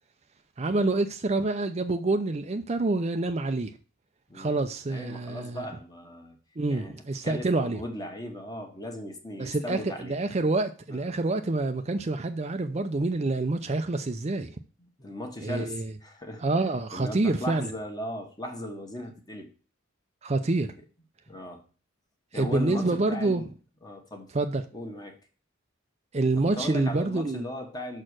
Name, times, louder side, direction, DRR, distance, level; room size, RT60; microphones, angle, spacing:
voice 1, 0.6-3.7 4.3-5.7 6.6-7.8 9.4-14.6 15.4-15.9 16.4-17.7 20.2-20.7 22.3-23.4 24.3-24.6 26.1-27.5, right 2 dB, 35° right, 0.5 m, -27 dB
voice 2, 4.3-4.6 4.9-6.4 6.7-6.9 7.2-10.2 10.9-11.0 14.8-15.8 16.0-16.4 16.9-19.5 21.3-21.6 22.3-23.4 23.8-24.3 24.7-25.2 26.4-28.0, left 1 dB, 20° left, 1.4 m, -37 dB
6.3 x 4.4 x 6.2 m
head